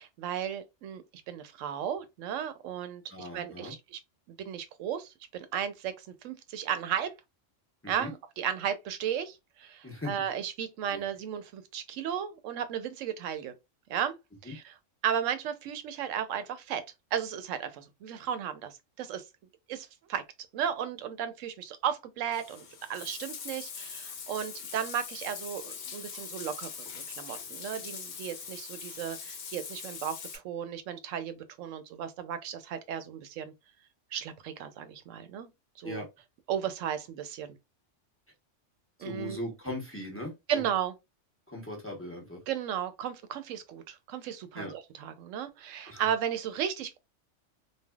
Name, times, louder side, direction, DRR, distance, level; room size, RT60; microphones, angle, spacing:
voice 1, 0.0-4.0 4.3-7.1 7.9-13.5 13.9-14.2 14.4-14.8 15.0-16.8 17.1-19.2 19.7-20.2 20.5-22.6 22.9-33.5 34.1-35.5 35.8-36.0 36.5-37.5 39.0-39.4 40.5-40.9 42.5-47.0, right 9 dB, 90° right, 0.9 m, -35 dB
voice 2, 3.1-3.7 7.8-8.1 9.8-10.1 10.9-11.0 14.5-14.6 35.8-36.1 39.0-40.7 41.5-42.4 44.5-44.7 45.9-46.0, left 1 dB, 15° left, 0.7 m, -39 dB
Bathtub (filling or washing), 22.3-30.4, left 6 dB, 65° left, 0.9 m, -42 dB
3.3 x 2.3 x 2.2 m
omnidirectional pair, 1.3 m